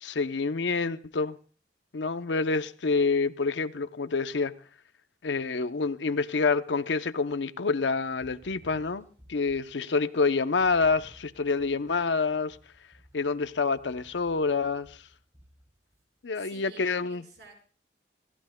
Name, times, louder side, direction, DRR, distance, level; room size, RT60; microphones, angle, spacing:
voice 1, 0.0-1.4 1.9-4.5 5.2-12.6 13.1-15.0 16.2-17.2, left 4 dB, 90° left, 0.7 m, -27 dB
sound 1, 8.2-9.9 10.6-16.0, equal, 20° right, 5.4 m, -56 dB
voice 2, 16.3-17.6, right 4 dB, 75° right, 4.9 m, -51 dB
27.5 x 14.0 x 2.2 m
head